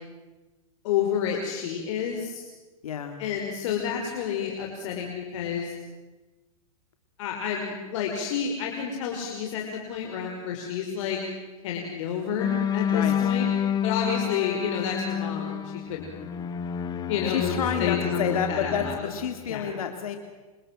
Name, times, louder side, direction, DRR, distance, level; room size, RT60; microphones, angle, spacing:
voice 1, 0.8-2.4 3.2-5.7 7.2-11.2 11.6-13.5 13.8-16.2 17.1-19.2 19.4-19.8, left 7 dB, 60° left, 1 dB, 5.4 m, -30 dB
voice 2, 2.8-3.2 12.9-13.2 17.3-20.2, left 8 dB, 80° left, 5 dB, 2.9 m, -29 dB
sound 1, 12.4-19.0, left 8 dB, 20° left, 1.9 m, -29 dB
28.5 x 26.5 x 7.8 m, 1.2 s
hypercardioid pair, 135°, 18 cm